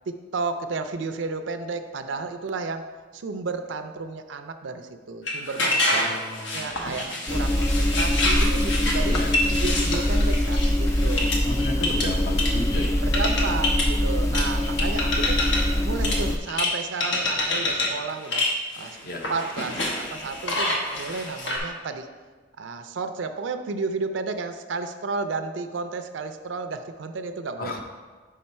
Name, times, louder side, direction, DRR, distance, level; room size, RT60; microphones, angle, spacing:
voice 1, 0.1-2.9 3.1-6.1 6.5-9.2 9.6-11.4 11.8-12.0 13.0-18.5 18.7-22.1 22.6-27.8, right 4 dB, 85° right, 8 dB, 0.5 m, -32 dB
sound 1, 5.3-12.9 13.1-13.9 14.3-15.8 16.0-16.7 17.0-17.9 18.2-21.6, left 2 dB, 80° left, 1.1 m, -27 dB
voice 2, 5.9-7.5 9.0-9.4 11.4-13.1 19.0-19.2 27.6-27.8, left 1 dB, 50° left, 3 dB, 0.7 m, -34 dB
sound 2, 7.3-16.4, left 1 dB, 15° left, 0.3 m, -23 dB
5.6 x 5.1 x 4.2 m, 1.4 s
head